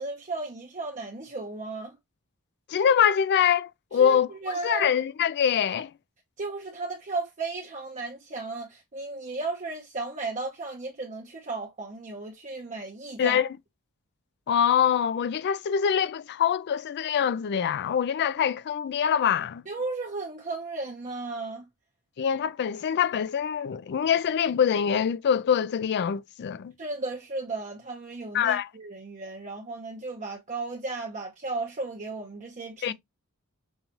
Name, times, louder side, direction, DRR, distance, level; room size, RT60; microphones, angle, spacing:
voice 1, 0.0-2.0 4.0-4.9 6.4-13.4 19.7-21.6 26.8-32.9, right 3 dB, 35° right, 0.7 m, -35 dB
voice 2, 2.7-4.3 4.6-5.9 13.2-13.6 14.5-19.6 22.2-26.7 28.3-28.7 32.8-32.9, left 8 dB, 50° left, 0.3 m, -24 dB
5.4 x 2.3 x 2.8 m
head